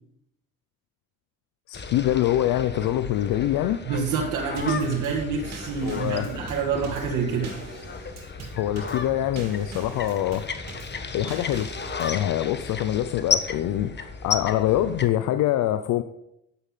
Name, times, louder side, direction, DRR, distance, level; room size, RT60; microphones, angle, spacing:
voice 1, 1.7-3.8 4.7-4.8 5.8-6.3 8.5-10.4 11.1-11.7 12.0-16.0, left 12 dB, 90° left, 11 dB, 0.7 m, -24 dB
sound 1, 1.7-15.1, left 5 dB, 35° left, 1.3 m, -34 dB
voice 2, 3.9-7.5, right 5 dB, 90° right, -3 dB, 2.3 m, -27 dB
Drum kit / Snare drum / Bass drum, 4.6-12.2, right 3 dB, 60° right, 3.2 m, -43 dB
11.5 x 8.5 x 5.6 m, 0.80 s
cardioid pair, 90°, 30 cm